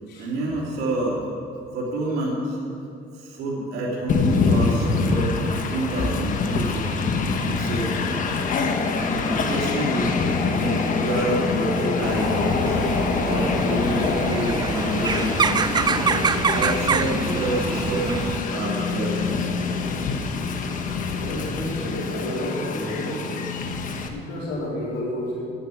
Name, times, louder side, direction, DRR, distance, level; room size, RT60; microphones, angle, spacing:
voice 1, 0.2-1.2 1.7-2.6 3.1-7.1 7.4-8.2 8.7-10.1 10.4-12.8 13.2-15.4 16.5-19.3, right 1 dB, 80° right, -6 dB, 3.0 m, -28 dB
Train, 4.1-24.1, left 4 dB, 50° left, 1.3 m, -25 dB
sound 1, 12.0-18.4, right 5 dB, 25° right, 0.4 m, -26 dB
voice 2, 21.1-23.3 24.1-25.4, left 1 dB, 80° left, -5 dB, 4.1 m, -30 dB
10.0 x 10.0 x 8.5 m, 2.5 s
cardioid pair, 110°, 17 cm